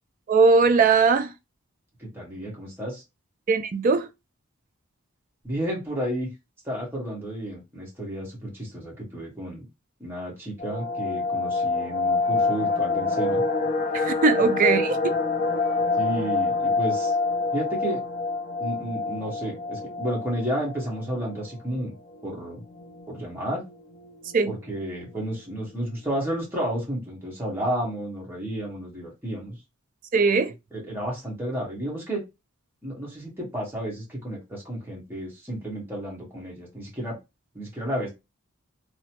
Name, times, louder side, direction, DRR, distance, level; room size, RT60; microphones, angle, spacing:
voice 1, 0.3-1.3 3.5-4.1 13.9-15.0 24.3-24.5 30.1-30.5, right 4 dB, 40° right, 0.3 m, -20 dB
voice 2, 2.0-3.0 5.4-6.3 6.6-9.7 10.0-13.4 16.0-17.1 17.5-18.0 18.6-21.9 22.2-22.6 23.1-23.6 24.5-29.6 30.7-32.2 32.8-37.2 37.5-38.1, right 1 dB, 10° right, 1.2 m, -32 dB
sound 1, 10.6-21.4 21.7-21.8 22.1-22.3 22.8-23.2 23.7-23.8 24.0-24.5 24.8-24.9, left 3 dB, 40° left, 0.4 m, -26 dB
3.0 x 2.0 x 2.9 m
head